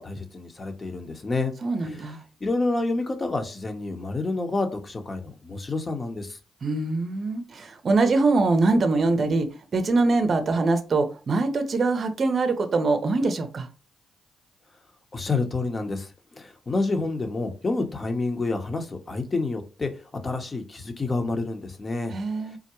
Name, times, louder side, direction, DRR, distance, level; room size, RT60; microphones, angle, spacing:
voice 1, 0.0-1.5 1.8-2.1 2.4-6.4 15.1-19.9 20.2-22.1, left 3 dB, 35° left, 5 dB, 0.8 m, -28 dB
voice 2, 1.6-2.2 6.6-13.7 22.1-22.6, right 3 dB, 50° right, 8 dB, 0.5 m, -23 dB
3.7 x 2.1 x 2.9 m, 0.33 s
supercardioid pair, 55°, 0 cm